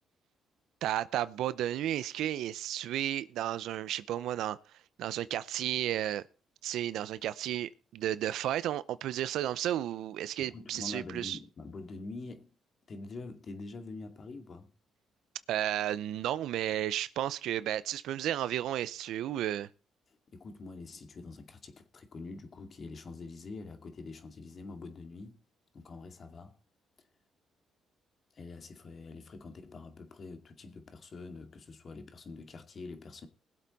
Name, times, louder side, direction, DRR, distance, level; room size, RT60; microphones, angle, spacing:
voice 1, 0.8-4.6 5.0-6.2 6.6-11.4 15.5-19.7, right 12 dB, 80° right, 0.6 m, -33 dB
voice 2, 10.4-12.5 12.9-14.7 20.1-25.4 25.7-26.6 28.3-33.3, left 3 dB, 50° left, 2.3 m, -45 dB
21.0 x 7.7 x 4.1 m
supercardioid pair, 65°, 0 cm